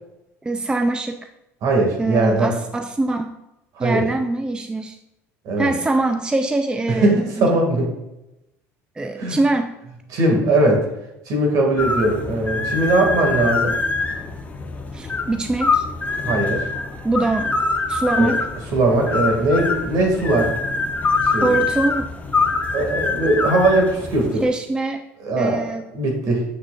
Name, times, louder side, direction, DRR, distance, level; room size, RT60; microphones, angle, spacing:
voice 1, 0.4-1.3 2.0-3.4 3.8-5.0 5.6-7.1 7.4-7.5 9.0-9.7 14.9-15.8 17.0-17.6 17.9-18.5 21.4-22.1 24.4-25.1 25.4-25.9, right 2 dB, 10° right, 7 dB, 0.4 m, -23 dB
voice 2, 1.6-2.5 3.8-4.0 5.4-5.7 6.9-7.9 9.2-9.4 10.1-10.9 11.3-13.8 16.2-16.7 18.2-18.3 18.7-20.5 21.2-21.6 22.7-24.4 25.2-25.6 25.9-26.5, right 2 dB, 60° right, 1 dB, 2.1 m, -19 dB
sound 1, 11.8-24.5, left 4 dB, 20° left, 1.0 m, -24 dB
7.6 x 6.2 x 2.4 m, 0.91 s
supercardioid pair, 85°, 7 cm